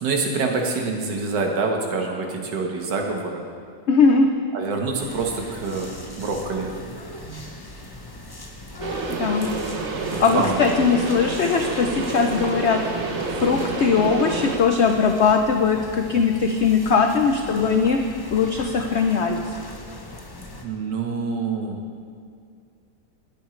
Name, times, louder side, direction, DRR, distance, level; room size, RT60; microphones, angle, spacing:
voice 1, 0.0-3.4 4.5-6.8 10.1-10.6 20.6-21.8, right 4 dB, 85° right, 2 dB, 1.9 m, -26 dB
voice 2, 3.9-4.3 9.1-9.5 10.0-12.8 13.3-18.0 18.3-19.6, left 5 dB, 70° left, 5 dB, 0.6 m, -20 dB
sound 1, 5.0-20.6, left 2 dB, 25° left, 0.5 m, -37 dB
sound 2, 8.8-14.6, right 4 dB, 50° right, 1.0 m, -29 dB
19.0 x 8.8 x 3.2 m, 2.2 s
omnidirectional pair, 1.8 m